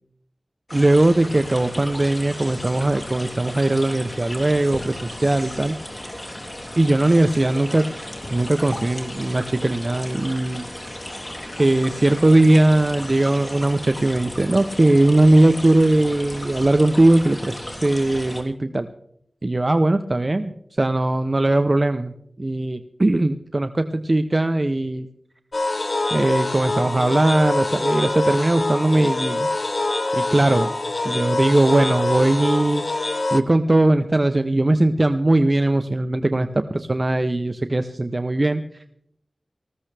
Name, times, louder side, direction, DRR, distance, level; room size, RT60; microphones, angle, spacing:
sound 1, 0.7-18.4, left 1 dB, 35° left, 3.3 m, -35 dB
voice 1, 0.7-5.8 6.8-7.9 8.3-10.7 11.5-18.9 19.4-20.5 20.8-25.1 26.1-29.5 30.1-30.7 31.0-32.9 33.3-38.6, right 2 dB, 35° right, 9 dB, 0.6 m, -19 dB
sound 2, 25.5-33.4, left 2 dB, 50° left, 0.9 m, -25 dB
19.0 x 14.5 x 3.3 m, 0.72 s
wide cardioid pair, 75°, 0 cm